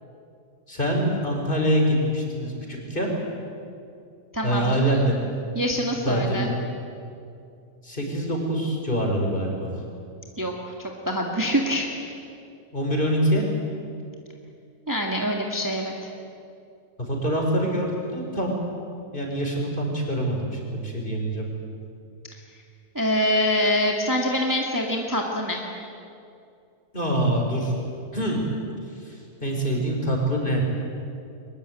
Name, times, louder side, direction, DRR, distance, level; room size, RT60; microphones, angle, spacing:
voice 1, 0.7-3.1 4.4-5.1 6.0-6.5 7.8-9.7 12.7-13.5 17.0-18.6 19.1-21.5 26.9-27.7 28.1-28.4 28.9-30.6, equal, 30° left, 0 dB, 5.0 m, -25 dB
voice 2, 4.3-4.8 5.5-6.5 10.4-10.5 10.8-11.9 14.9-16.1 23.0-25.6, equal, 10° right, 0 dB, 1.9 m, -25 dB
23.0 x 21.5 x 9.0 m, 2.5 s
omnidirectional pair, 1.7 m